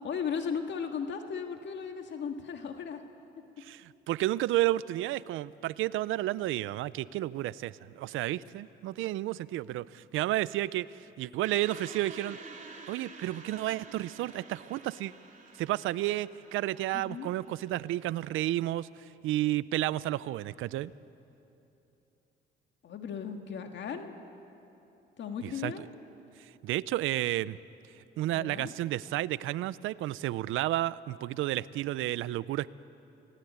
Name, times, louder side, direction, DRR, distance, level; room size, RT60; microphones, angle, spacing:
voice 1, 0.0-3.0 16.9-17.3 22.8-24.2 25.2-25.9 28.3-28.7, left 6 dB, 65° left, 5 dB, 1.8 m, -36 dB
voice 2, 3.6-12.4 12.9-15.1 15.6-18.9 19.2-20.9 25.4-25.8 26.4-27.6 28.2-32.7, right 15 dB, 90° right, 18 dB, 0.6 m, -31 dB
sound 1, 11.4-18.5, right 4 dB, 40° right, 3.7 m, -50 dB
29.0 x 19.0 x 9.5 m, 2.9 s
cardioid pair, 90°, 20 cm